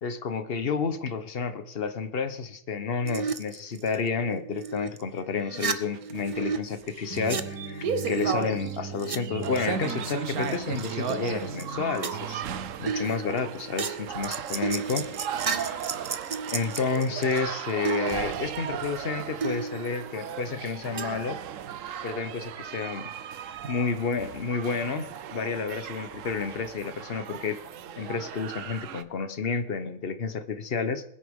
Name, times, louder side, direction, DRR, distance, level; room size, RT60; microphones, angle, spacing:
voice 1, 0.0-12.4 12.8-15.1 15.5-15.8 16.5-21.4 22.0-23.1 23.7-27.6 28.0-31.0, left 5 dB, 45° left, 11 dB, 1.0 m, -30 dB
sound 1, 3.0-5.0 5.3-6.6 6.8-9.2 9.4-10.1 10.4-11.3 11.6-11.7 11.9-12.4 12.9-17.4 17.8-19.0 19.4-20.3 21.0-21.3, right 5 dB, 45° right, 0.4 m, -34 dB
sound 2, 5.9-12.7, right 5 dB, 90° right, 1.6 m, -33 dB
sound 3, 9.4-29.0, right 9 dB, 65° right, 1.0 m, -38 dB
21.0 x 9.9 x 3.6 m, 0.73 s
omnidirectional pair, 1.5 m